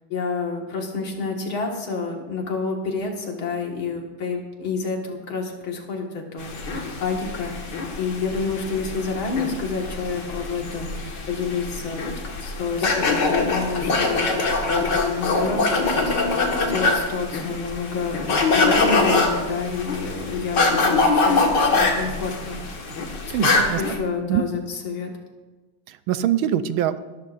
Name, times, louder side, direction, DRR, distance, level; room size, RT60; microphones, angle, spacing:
voice 1, 0.1-6.5 7.0-12.1 12.4-22.6 23.4-25.1, left 4 dB, 75° left, 1 dB, 2.6 m, -29 dB
sound 1, 6.4-23.9, left 3 dB, 60° left, 2.3 m, -23 dB
voice 2, 23.3-23.8 24.3-24.4 25.9-27.0, right 11 dB, 80° right, 11 dB, 1.5 m, -23 dB
20.0 x 13.0 x 2.6 m, 1.2 s
omnidirectional pair, 2.2 m